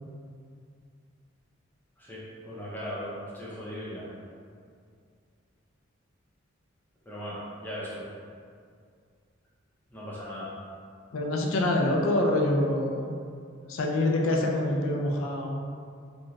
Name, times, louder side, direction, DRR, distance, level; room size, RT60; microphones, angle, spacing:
voice 1, 2.0-4.0 7.1-8.0 9.9-10.5, equal, 10° left, -8 dB, 0.6 m, -38 dB
voice 2, 11.1-13.2 13.7-15.6, left 1 dB, 80° left, 1 dB, 0.4 m, -26 dB
2.5 x 2.2 x 3.1 m, 2.2 s
head